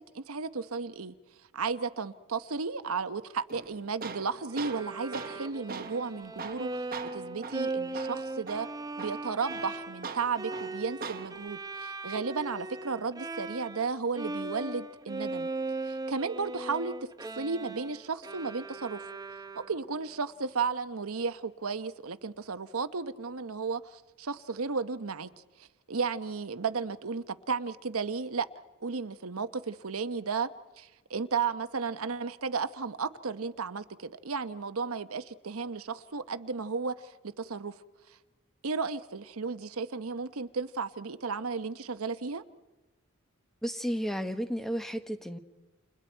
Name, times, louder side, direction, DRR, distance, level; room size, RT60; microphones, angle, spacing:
voice 1, 0.1-1.2 1.5-6.8 7.1-8.7 9.0-15.5 15.8-16.9 17.4-19.0 19.6-25.3 25.6-28.5 28.8-30.5 30.8-37.7 38.6-42.4, right 5 dB, 80° right, 0.9 m, -34 dB
Tools, 3.5-11.5, right 4 dB, 45° right, 1.2 m, -43 dB
Bowed string instrument, 4.5-13.9 14.1-20.0, right 2 dB, 15° right, 0.7 m, -38 dB
voice 2, 43.6-45.4, equal, ahead, 1.1 m, -32 dB
29.5 x 29.0 x 4.5 m
head